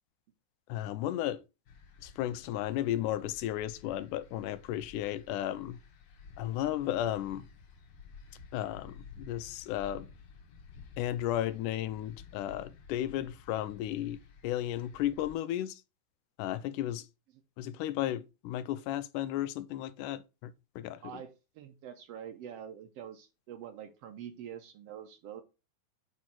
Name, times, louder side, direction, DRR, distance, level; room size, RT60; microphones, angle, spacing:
voice 1, 0.7-1.4 2.0-5.8 6.4-7.5 8.5-10.1 11.0-15.8 16.4-17.1 17.6-21.2, left 12 dB, 85° left, 2.1 m, -34 dB
sound 1, 1.7-15.3, left 5 dB, 60° left, 2.1 m, -53 dB
voice 2, 21.0-25.4, right 9 dB, 75° right, 1.5 m, -45 dB
6.9 x 3.1 x 5.8 m
omnidirectional pair, 3.7 m